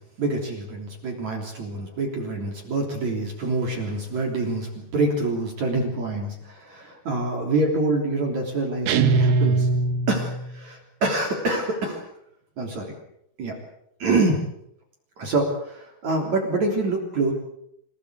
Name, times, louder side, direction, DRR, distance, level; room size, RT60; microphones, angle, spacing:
voice 1, 0.2-9.7 10.1-12.0 12.6-12.9 13.4-13.6 14.0-14.4 15.2-17.3, right 2 dB, 45° right, 1 dB, 4.6 m, -26 dB
sound 1, 8.9-10.6, right 3 dB, 75° right, 3.3 m, -21 dB
27.5 x 18.0 x 8.2 m, 0.75 s
omnidirectional pair, 4.5 m